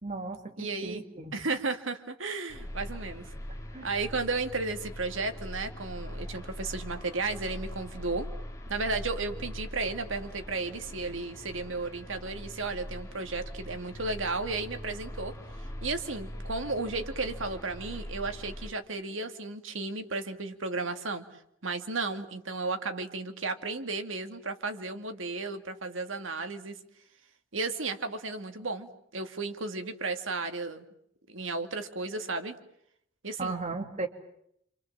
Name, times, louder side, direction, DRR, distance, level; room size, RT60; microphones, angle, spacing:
voice 1, 0.0-1.3 3.7-3.9 33.4-34.1, right 3 dB, 40° right, 4 dB, 2.6 m, -35 dB
voice 2, 0.6-1.0 1.3-3.3 3.8-8.3 8.7-15.3 15.8-21.2 21.6-26.8 27.5-30.8 31.3-32.6 33.2-33.6, right 3 dB, 85° right, 7 dB, 2.4 m, -34 dB
sound 1, 2.5-18.7, equal, 15° left, 2.7 m, -42 dB
28.0 x 27.0 x 7.5 m, 0.71 s
head